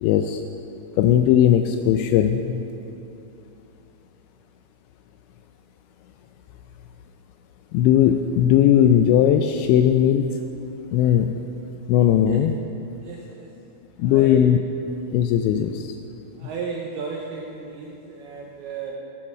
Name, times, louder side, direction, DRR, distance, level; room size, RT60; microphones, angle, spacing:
voice 1, 0.0-0.4 1.0-2.6 7.7-10.4 10.9-11.4 11.9-12.5 14.0-14.6 15.1-16.0 16.4-16.5, left 10 dB, 85° left, 6 dB, 2.6 m, -18 dB
voice 2, 13.0-13.5 14.0-14.4 16.4-19.0, right 5 dB, 80° right, -1 dB, 2.3 m, -34 dB
14.5 x 10.0 x 6.0 m, 2.8 s
omnidirectional pair, 5.6 m